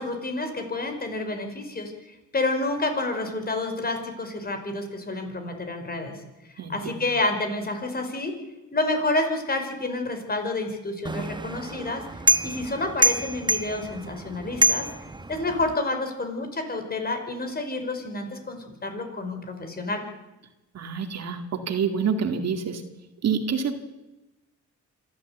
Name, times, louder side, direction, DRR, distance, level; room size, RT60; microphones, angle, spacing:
voice 1, 0.0-6.2 6.7-8.4 8.7-12.0 12.4-14.9 15.3-20.0, left 2 dB, 30° left, 6 dB, 5.3 m, -29 dB
voice 2, 6.6-7.0 20.7-22.8 23.2-23.7, right 6 dB, 60° right, 7 dB, 2.4 m, -27 dB
sound 1, 11.0-15.7, right 1 dB, 15° right, 1.0 m, -26 dB
26.0 x 13.5 x 8.2 m, 1.0 s
cardioid pair, 90°, 30 cm